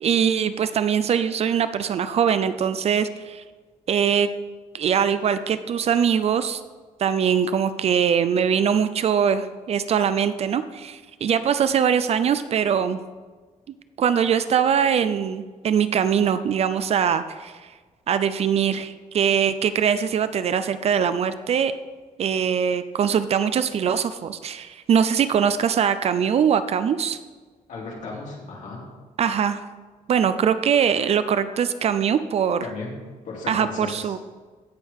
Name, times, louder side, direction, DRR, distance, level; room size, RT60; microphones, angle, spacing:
voice 1, 0.0-3.4 3.9-4.3 4.7-6.6 7.0-13.0 14.0-17.5 18.1-21.7 22.2-27.2 29.2-29.6 30.1-32.6 33.5-34.2, right 7 dB, 50° right, 12 dB, 0.4 m, -22 dB
voice 2, 27.7-28.9 32.6-32.9 33.2-34.1, left 3 dB, 70° left, -4 dB, 3.3 m, -35 dB
16.5 x 6.4 x 3.6 m, 1.4 s
wide cardioid pair, 155°, 13 cm